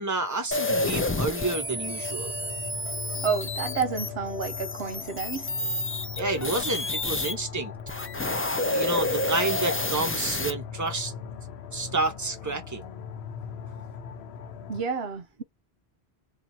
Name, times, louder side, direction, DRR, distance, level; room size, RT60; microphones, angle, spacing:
voice 1, 0.0-2.3 6.1-7.7 8.6-11.1 11.7-12.9, right 2 dB, 15° right, 1.1 m, -30 dB
sound 1, 0.5-7.3 7.8-10.5, left 1 dB, 20° left, 0.3 m, -30 dB
sound 2, 0.7-14.8, left 7 dB, 80° left, 0.9 m, -39 dB
voice 2, 3.2-5.5 14.7-15.4, right 5 dB, 70° right, 1.0 m, -30 dB
2.7 x 2.6 x 4.1 m
omnidirectional pair, 1.1 m